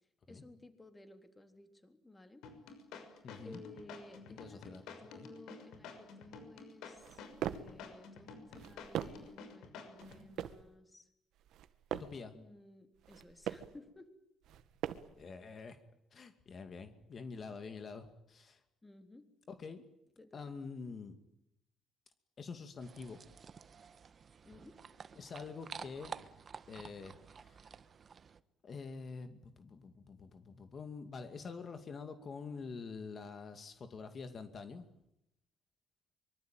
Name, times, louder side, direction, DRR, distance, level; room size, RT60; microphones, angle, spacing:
voice 1, 0.3-2.4 3.4-11.1 12.3-14.1 18.8-19.3 20.2-20.4 24.4-24.8, left 2 dB, 15° left, 7 dB, 3.6 m, -56 dB
sound 1, 2.4-10.2, left 5 dB, 85° left, 6.3 m, -50 dB
voice 2, 3.2-3.6 4.4-4.8 5.2-5.3 11.9-12.3 15.2-15.8 16.1-18.6 19.5-19.8 20.3-21.2 22.4-23.2 25.2-26.1 26.7-27.6 28.6-34.9, left 4 dB, 40° left, 8 dB, 2.4 m, -46 dB
sound 2, 7.0-7.8 8.5-9.4 10.0-10.7 11.4-12.3 13.0-13.8 14.4-15.2, right 11 dB, 75° right, 1.7 m, -42 dB
sound 3, 22.8-28.4, right 6 dB, 40° right, 1.4 m, -51 dB
25.0 x 24.5 x 9.2 m, 0.80 s
cardioid pair, 125°, 0 cm